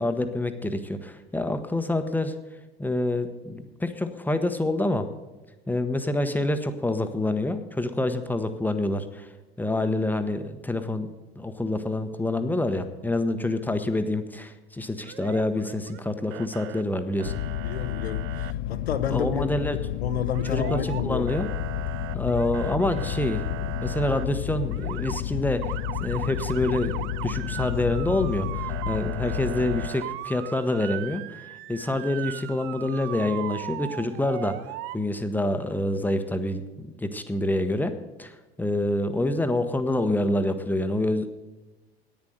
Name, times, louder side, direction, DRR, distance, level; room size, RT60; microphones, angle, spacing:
voice 1, 0.0-2.3 2.8-5.1 5.7-9.3 9.6-17.3 19.1-19.8 20.5-21.5 22.1-25.7 26.0-31.4 31.7-34.6 34.9-37.9 38.2-41.3, left 1 dB, 5° left, 8 dB, 1.0 m, -27 dB
Motor vehicle (road) / Siren, 15.0-16.0 16.3-16.8 17.2-18.5 20.3-21.0 21.3-24.3 24.7-25.2 25.6-35.0, right 15 dB, 40° right, 0.5 m, -38 dB
sound 1, 17.2-29.9, left 13 dB, 50° left, 0.5 m, -31 dB
voice 2, 17.6-19.5 20.0-21.3, left 8 dB, 75° left, 10 dB, 1.0 m, -30 dB
10.5 x 9.5 x 7.9 m, 1.1 s
figure-of-eight pair, 80°, 32 cm